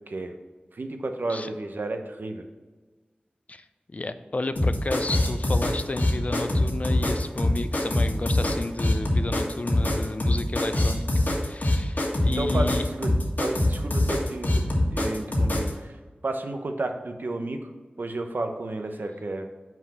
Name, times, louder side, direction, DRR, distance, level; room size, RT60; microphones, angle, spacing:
voice 1, 0.7-2.5 12.2-13.1 13.4-14.6 14.9-15.9 16.2-17.6 18.0-19.5, right 2 dB, 65° right, 5 dB, 0.8 m, -32 dB
voice 2, 3.5-11.1 11.4-12.8, left 2 dB, 45° left, 11 dB, 0.4 m, -32 dB
sound 1, 4.6-15.7, left 1 dB, 60° left, 1.6 m, -23 dB
5.8 x 4.8 x 5.9 m, 1.3 s
wide cardioid pair, 70°, 3 cm